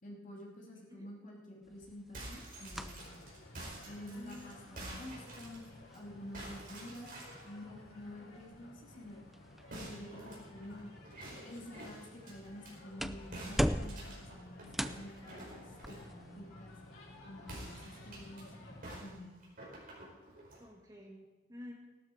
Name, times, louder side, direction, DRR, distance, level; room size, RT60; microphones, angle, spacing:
voice 1, 0.0-3.1 3.8-7.2 7.4-9.2 9.7-10.9 11.3-16.8 17.2-19.3, left 1 dB, 40° left, -2 dB, 2.9 m, -49 dB
sound 1, 1.6-19.0, equal, ahead, 0.4 m, -44 dB
sound 2, 2.0-6.0 6.3-7.5 9.7-12.7 13.3-16.1 17.4-18.4 18.8-20.6, right 1 dB, 45° right, 5.1 m, -49 dB
sound 3, 2.7-19.0, left 1 dB, 85° left, 4.6 m, -55 dB
voice 2, 3.9-5.0 20.6-21.7, left 1 dB, 20° right, -2 dB, 2.3 m, -51 dB
16.5 x 12.5 x 4.6 m, 1.2 s
head